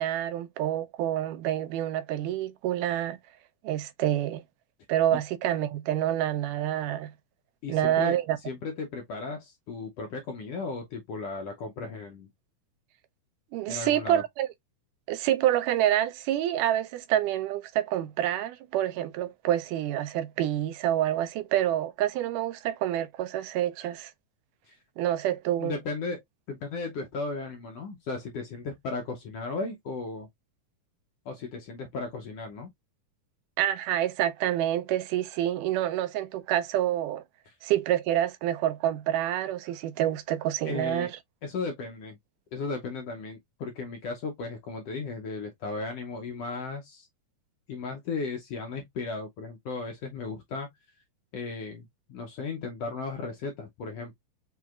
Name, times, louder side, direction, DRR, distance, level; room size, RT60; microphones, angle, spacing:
voice 1, 0.0-3.2 3.6-4.4 4.9-7.1 7.7-8.4 13.5-14.5 15.1-24.1 25.0-25.8 33.6-37.2 37.6-41.1, right 12 dB, 80° right, 2.1 m, -27 dB
voice 2, 7.6-12.3 13.7-14.2 24.6-24.8 25.6-26.2 26.5-30.3 31.2-32.7 37.5-37.6 40.6-41.1 41.4-42.2 42.5-47.1 47.7-50.7 51.3-54.2, left 4 dB, 85° left, 1.3 m, -35 dB
6.1 x 2.7 x 2.4 m
omnidirectional pair, 3.8 m